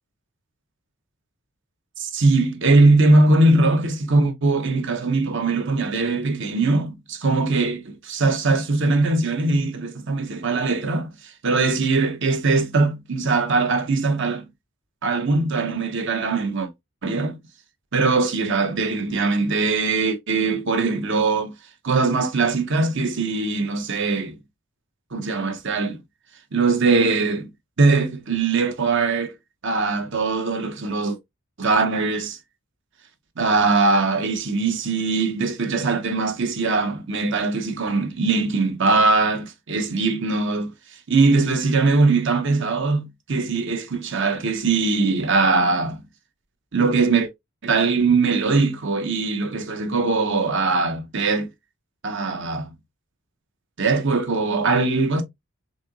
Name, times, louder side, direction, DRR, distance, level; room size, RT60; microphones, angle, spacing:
voice 1, 2.0-14.5 15.0-16.7 17.0-17.4 17.9-21.5 21.8-24.4 25.1-26.0 26.5-27.5 27.8-29.3 29.6-31.2 31.6-32.4 33.4-40.7 41.1-46.0 46.7-47.3 47.6-51.5 52.0-52.7 53.8-55.2, right 3 dB, 65° right, 0.9 m, -21 dB
4.2 x 3.8 x 2.3 m
head